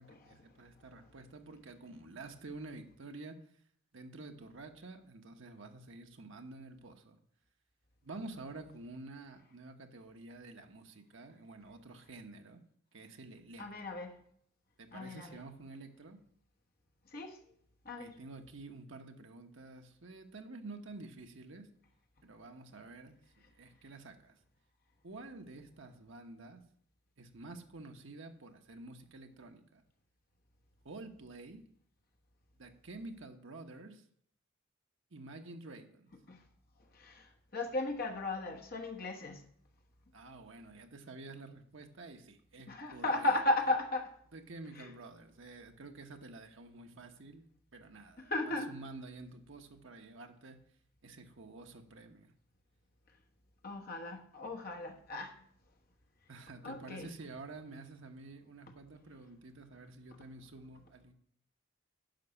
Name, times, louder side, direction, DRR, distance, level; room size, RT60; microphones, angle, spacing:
voice 1, 0.0-3.4 3.9-7.2 8.0-12.6 12.9-13.6 14.8-16.2 18.0-21.7 22.2-24.4 25.0-26.6 27.2-29.8 30.8-31.6 32.6-34.0 35.1-36.1 40.1-43.3 44.3-47.5 47.7-50.6 51.0-52.3 56.3-61.1, right 2 dB, 65° right, 1.0 m, -49 dB
voice 2, 13.6-14.1 14.9-15.3 17.1-17.4 17.8-18.1 36.3-36.4 36.9-39.4 42.7-44.1 44.8-44.9 48.3-48.7 53.6-55.3 56.6-57.1, left 2 dB, 45° left, 1.1 m, -35 dB
10.5 x 5.4 x 5.8 m
head